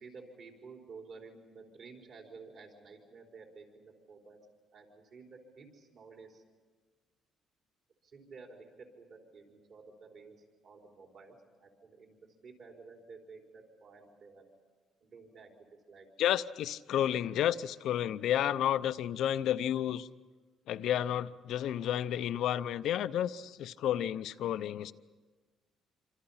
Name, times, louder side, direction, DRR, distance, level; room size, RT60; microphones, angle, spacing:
voice 1, 0.0-4.4 4.7-6.4 8.0-10.3 10.6-14.4 15.0-16.1, right 4 dB, 55° right, 1 dB, 4.3 m, -52 dB
voice 2, 16.2-20.1 20.7-24.9, left 11 dB, 70° left, 14 dB, 0.7 m, -31 dB
27.0 x 26.0 x 5.7 m, 1.4 s
cardioid pair, 135°, 0 cm